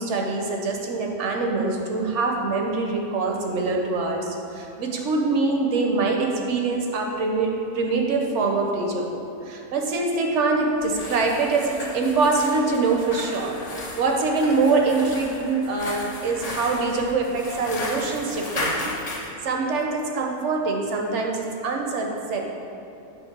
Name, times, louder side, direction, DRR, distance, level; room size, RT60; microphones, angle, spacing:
voice 1, 0.0-22.4, right 3 dB, 60° right, 1 dB, 0.8 m, -24 dB
sound 1, 10.8-19.3, left 2 dB, 60° left, 0.4 m, -34 dB
7.2 x 3.0 x 5.9 m, 2.7 s
omnidirectional pair, 1.7 m